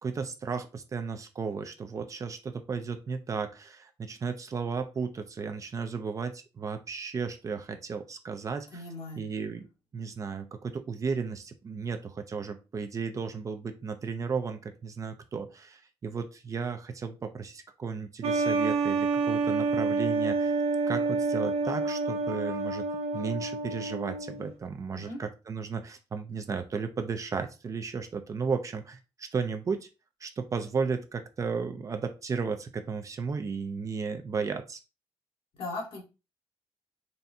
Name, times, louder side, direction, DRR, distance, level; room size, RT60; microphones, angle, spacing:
voice 1, 0.0-8.8 9.2-9.7 9.9-20.5 20.9-22.9 23.1-29.9 30.2-34.8, right 5 dB, 30° right, 7 dB, 0.5 m, -34 dB
voice 2, 8.7-9.2 24.9-25.2 35.6-36.0, left 2 dB, 65° left, 0 dB, 1.6 m, -38 dB
sound 1, 18.2-24.5, right 3 dB, 80° right, 0.5 m, -28 dB
4.1 x 3.4 x 2.7 m, 0.29 s
wide cardioid pair, 175°, 10 cm